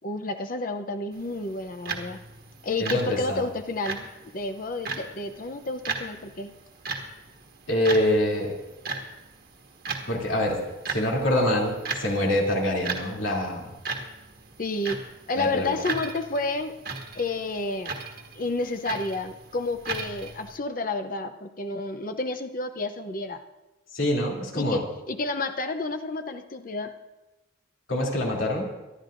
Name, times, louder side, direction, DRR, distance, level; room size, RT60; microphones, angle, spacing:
voice 1, 0.0-2.2 2.6-4.1 4.3-6.5 14.6-15.0 15.3-16.7 17.1-18.0 18.4-23.4 24.5-26.9, left 2 dB, 45° left, 8 dB, 0.7 m, -30 dB
sound 1, 1.1-20.6, right 4 dB, 50° right, 1.5 m, -38 dB
voice 2, 2.8-3.4 7.7-8.6 10.1-10.6 10.9-13.7 15.4-15.8 23.9-24.8 27.9-28.7, left 1 dB, 85° left, -2 dB, 2.9 m, -25 dB
24.0 x 12.5 x 2.6 m, 1.0 s
head